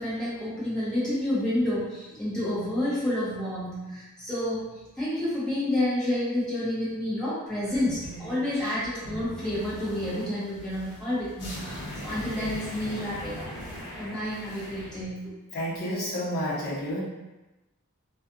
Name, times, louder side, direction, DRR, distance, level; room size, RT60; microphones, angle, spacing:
voice 1, 0.0-13.5 14.0-15.3, left 1 dB, 5° left, -11 dB, 1.0 m, -29 dB
sound 1, 7.6-15.0, equal, 70° left, 0.7 m, -40 dB
voice 2, 15.5-17.0, equal, 45° left, -8 dB, 0.9 m, -30 dB
2.4 x 2.4 x 2.6 m, 1.0 s
head